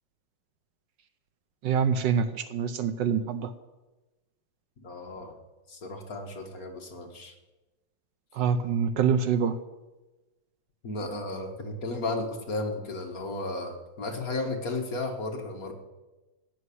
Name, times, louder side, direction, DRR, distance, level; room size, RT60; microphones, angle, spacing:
voice 1, 1.6-3.5 8.3-9.6, right 7 dB, 70° right, 11 dB, 1.3 m, -25 dB
voice 2, 4.8-5.4 5.7-7.3 10.8-15.7, left 2 dB, 45° left, 3 dB, 1.9 m, -34 dB
15.5 x 6.7 x 9.8 m, 1.1 s
omnidirectional pair, 2.2 m